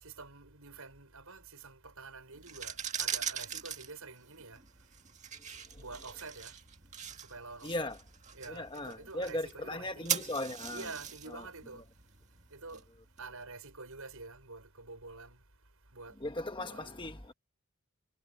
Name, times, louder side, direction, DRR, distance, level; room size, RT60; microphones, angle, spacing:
voice 1, 0.0-4.6 5.7-6.5 7.2-7.9 8.3-10.4 10.7-11.8 12.5-12.8 13.2-15.4 15.9-16.1 16.7-16.9, right 3 dB, 75° right, 6.4 m, -47 dB
sound 1, 2.4-13.2, right 8 dB, 30° right, 1.9 m, -41 dB
voice 2, 7.6-8.0 8.5-10.9 11.3-11.4 16.2-17.3, left 1 dB, 20° left, 1.4 m, -38 dB
head